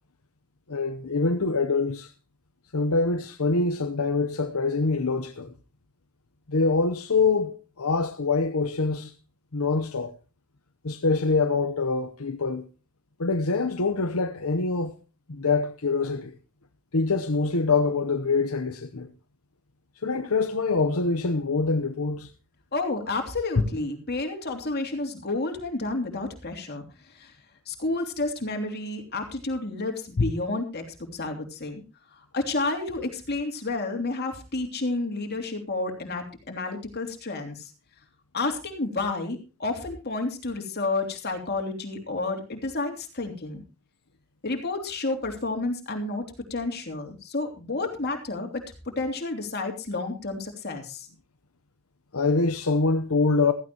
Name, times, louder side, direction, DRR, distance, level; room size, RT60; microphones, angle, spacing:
voice 1, 0.7-2.1 2.7-5.5 6.5-9.1 9.5-10.1 10.8-12.6 13.2-14.9 15.3-16.3 16.9-19.1 20.0-22.3 52.1-53.5, left 3 dB, 75° left, 1.0 m, -25 dB
voice 2, 22.7-27.4 27.7-30.8 31.1-31.8 32.1-37.7 38.3-43.6 44.4-46.2 46.5-48.6 49.0-51.1, left 2 dB, 45° left, 3.1 m, -30 dB
16.0 x 14.5 x 3.0 m
head